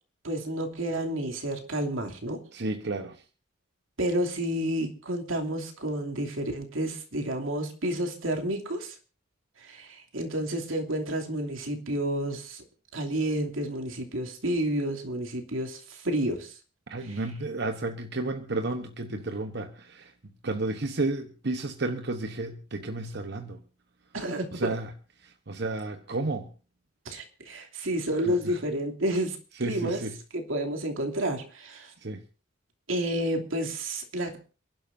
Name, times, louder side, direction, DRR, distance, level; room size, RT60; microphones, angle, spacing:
voice 1, 0.2-2.4 4.0-9.0 9.6-12.6 12.9-16.6 17.0-17.2 24.1-24.7 27.0-30.0 30.3-31.9 32.9-34.4, right 1 dB, 85° right, 2.9 m, -30 dB
voice 2, 2.5-3.2 16.9-20.1 20.4-23.6 24.5-24.9 25.2-26.5 29.6-30.1 32.0-32.2, right 2 dB, 55° right, 1.1 m, -32 dB
28.5 x 11.5 x 2.7 m
head